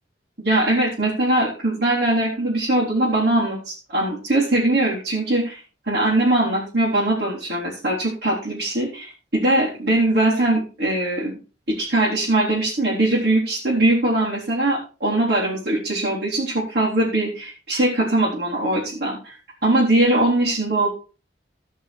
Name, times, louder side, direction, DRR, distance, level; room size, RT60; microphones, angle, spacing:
voice 1, 0.4-5.6 5.9-11.3 11.7-19.3 19.6-20.9, right 1 dB, 55° right, -6 dB, 4.0 m, -21 dB
16.5 x 5.5 x 4.4 m, 0.34 s
head